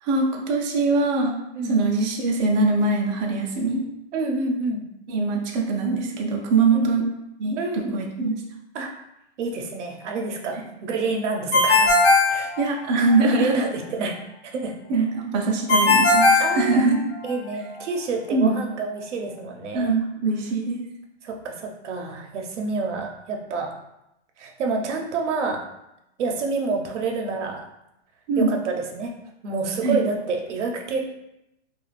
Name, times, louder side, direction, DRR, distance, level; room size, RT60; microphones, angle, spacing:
voice 1, 0.0-1.3 1.7-3.8 5.1-7.0 7.4-8.4 12.6-13.6 14.9-17.0 18.3-18.6 19.7-20.8 28.3-28.5 29.8-30.0, right 3 dB, 40° right, 0 dB, 0.4 m, -22 dB
voice 2, 4.1-4.8 6.7-6.9 7.6-8.0 8.7-8.9 9.4-11.9 12.3-12.5 13.2-14.1 14.5-14.8 16.4-16.9 17.2-19.9 21.2-23.8 24.4-25.6 26.2-27.6 28.4-29.1 29.4-31.1, right 4 dB, 85° right, 2 dB, 0.7 m, -28 dB
Ringtone, 11.5-13.2 15.7-17.3, left 2 dB, 65° left, 0.7 m, -18 dB
2.4 x 2.3 x 3.1 m, 0.86 s
hypercardioid pair, 155°, 35 cm